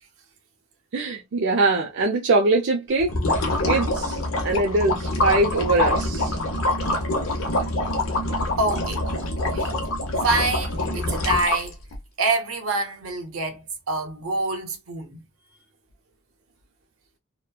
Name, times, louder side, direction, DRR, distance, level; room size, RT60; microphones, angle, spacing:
voice 1, 0.9-3.2 3.6-6.4, right 2 dB, 60° right, 0.4 m, -22 dB
sound 1, 3.0-12.0, left 2 dB, 75° left, 0.8 m, -25 dB
voice 2, 8.6-9.0 9.5-9.7 10.2-11.8 12.2-15.2, right 2 dB, 85° right, 0.9 m, -26 dB
3.0 x 2.1 x 2.2 m
head